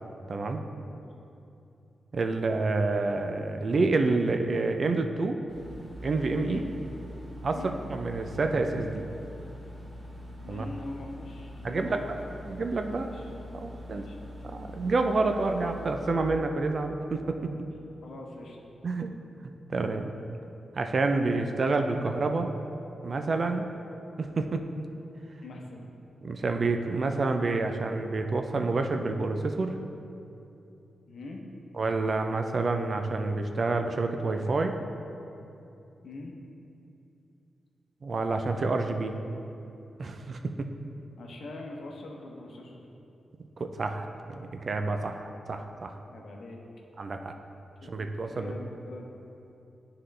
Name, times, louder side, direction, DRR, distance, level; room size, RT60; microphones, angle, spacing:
voice 1, 0.3-0.6 2.1-5.4 6.0-6.6 7.4-7.6 7.9-9.1 10.5-10.6 11.6-12.0 12.4-13.1 13.6-14.1 14.5-17.5 18.8-19.1 19.7-20.1 20.8-22.5 23.0-23.7 24.2-24.6 26.2-29.8 31.8-34.8 38.0-39.2 40.0-40.4 43.6-45.9 47.0-47.3 47.9-48.5, right 3 dB, 55° right, 5 dB, 0.4 m, -28 dB
sound 1, 5.5-16.1, left 1 dB, 35° right, 1.1 m, -43 dB
voice 2, 10.4-12.4 12.9-14.2 18.0-18.6 25.4-25.9 31.1-31.4 36.0-36.3 41.2-42.8 46.1-46.6 47.8-48.0 48.3-49.1, left 2 dB, 75° left, 0 dB, 0.8 m, -43 dB
9.6 x 3.8 x 3.3 m, 2.8 s
cardioid pair, 70°, 0 cm